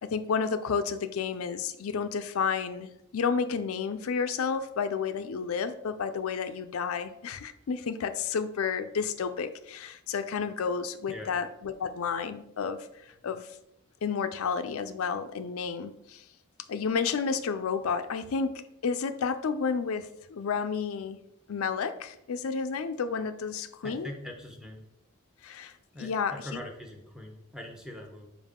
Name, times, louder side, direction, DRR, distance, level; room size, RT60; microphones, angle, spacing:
voice 1, 0.0-12.9 13.2-13.5 14.0-16.2 16.7-21.2 21.5-24.1 25.4-25.7 26.0-26.4, left 6 dB, 80° left, 9 dB, 0.4 m, -31 dB
voice 2, 23.8-24.8 25.9-28.3, left 1 dB, 5° right, 2 dB, 0.8 m, -42 dB
5.3 x 4.9 x 3.6 m, 0.82 s
head